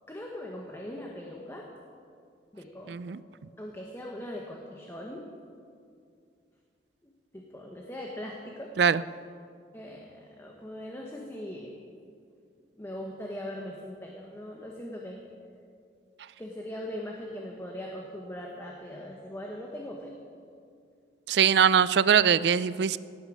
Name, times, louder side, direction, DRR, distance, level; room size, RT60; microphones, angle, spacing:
voice 1, 0.1-1.7 2.5-3.0 3.6-5.3 7.0-8.7 9.7-11.7 12.7-15.2 16.4-20.2, left 1 dB, 15° left, 0 dB, 1.2 m, -40 dB
voice 2, 2.9-3.2 8.8-9.0 21.3-23.0, right 7 dB, 65° right, 17 dB, 0.4 m, -22 dB
17.0 x 9.6 x 6.3 m, 2.3 s
head